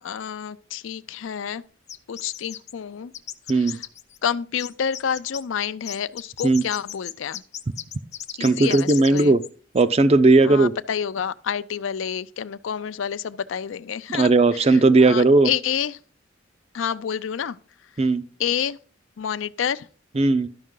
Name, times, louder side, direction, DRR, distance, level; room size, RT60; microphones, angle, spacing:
voice 1, 0.0-1.6 2.1-3.1 3.5-3.9 4.2-7.4 8.4-9.4 10.4-16.0 16.7-17.6 18.0-18.1 18.4-18.8 19.2-19.9, left 8 dB, 85° left, 0.4 m, -29 dB
sound 1, 1.9-2.7 3.1-4.3 4.6-5.4 5.8-9.5 9.8-9.9, left 10 dB, 35° left, 0.5 m, -36 dB
voice 2, 8.4-9.4 9.7-10.7 14.1-15.5 18.0-18.2 20.2-20.5, right 3 dB, 30° right, 0.4 m, -17 dB
12.0 x 5.4 x 3.8 m
head